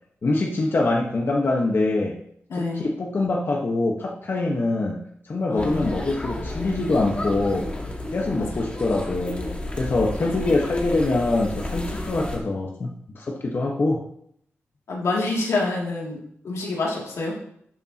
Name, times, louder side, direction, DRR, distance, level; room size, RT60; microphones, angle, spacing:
voice 1, 0.2-2.2 2.5-7.7 8.1-12.9 13.1-14.0, left 2 dB, 50° left, -1 dB, 1.3 m, -24 dB
voice 2, 2.5-2.8 5.5-5.9 8.4-8.5 10.2-10.6 14.9-17.4, left 3 dB, 85° left, -3 dB, 2.7 m, -27 dB
sound 1, 5.6-12.4, left 1 dB, 25° left, 2.0 m, -32 dB
12.0 x 6.9 x 3.0 m, 0.69 s
cardioid pair, 75°, 5 cm